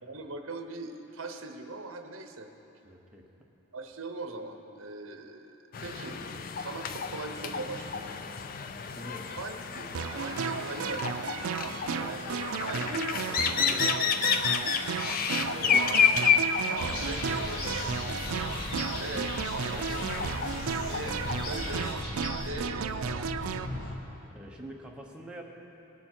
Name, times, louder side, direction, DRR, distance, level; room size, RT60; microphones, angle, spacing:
voice 1, 0.0-2.5 3.7-5.5 5.8-6.2 6.6-8.1 9.3-11.2 11.6-14.2 15.7-16.0 16.7-17.9 18.9-20.1 20.9-22.0 22.4-23.3, right 3 dB, 60° right, 5 dB, 0.8 m, -40 dB
voice 2, 2.8-3.3 8.9-9.3 15.3-15.9 24.3-25.4, right 1 dB, 5° right, -1 dB, 0.9 m, -45 dB
sound 1, 5.7-21.9, left 6 dB, 40° left, 0.4 m, -31 dB
sound 2, 9.9-23.7, right 6 dB, 80° right, 0.4 m, -34 dB
sound 3, 16.8-24.0, left 1 dB, 85° left, 1.4 m, -37 dB
19.0 x 7.1 x 4.4 m, 2.9 s
head